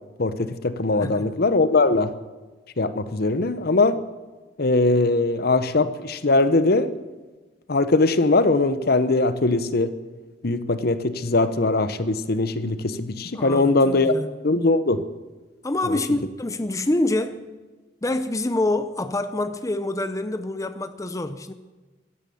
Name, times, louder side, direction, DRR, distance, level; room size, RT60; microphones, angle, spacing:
voice 1, 0.2-2.1 2.8-4.0 4.6-6.9 7.7-9.9 10.4-14.1 14.4-15.0 15.9-16.0, left 2 dB, 60° left, 13 dB, 0.9 m, -21 dB
voice 2, 1.0-1.3 13.3-14.3 15.6-17.4 18.0-21.5, left 2 dB, 20° left, 10 dB, 0.6 m, -26 dB
15.5 x 12.5 x 7.0 m, 1.2 s
head